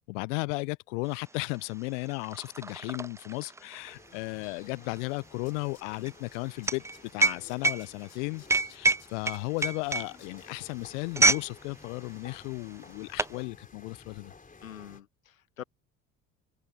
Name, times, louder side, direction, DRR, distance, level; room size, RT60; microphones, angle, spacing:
voice 1, 0.0-14.3, left 28 dB, 65° left, 0.6 m, -35 dB
sound 1, 1.2-1.3 1.6-11.5 11.8-12.1 12.7-13.4, right 3 dB, 5° right, 0.6 m, -28 dB
sound 2, 3.8-15.0, left 4 dB, 20° left, 3.9 m, -54 dB
Tools, 4.8-4.9 5.2-6.4 6.6-10.3 10.7-10.8, left 10 dB, 40° left, 4.8 m, -57 dB
voice 2, 14.6-15.6, left 10 dB, 85° left, 1.2 m, -46 dB
open air
hypercardioid pair, 65°, 39 cm